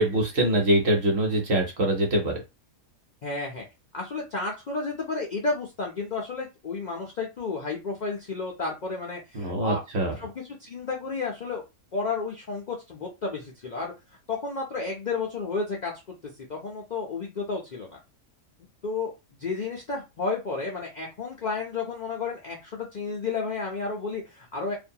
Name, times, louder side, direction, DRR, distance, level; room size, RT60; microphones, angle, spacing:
voice 1, 0.0-2.4 9.3-10.1, right 1 dB, 55° right, 1 dB, 0.9 m, -24 dB
voice 2, 3.2-3.6 3.9-9.8 10.2-11.6 11.9-13.9 14.3-16.2 16.5-18.0 18.8-19.1 19.4-24.7, left 4 dB, 90° left, 0 dB, 0.4 m, -32 dB
2.6 x 2.2 x 2.7 m, 0.25 s
omnidirectional pair, 1.5 m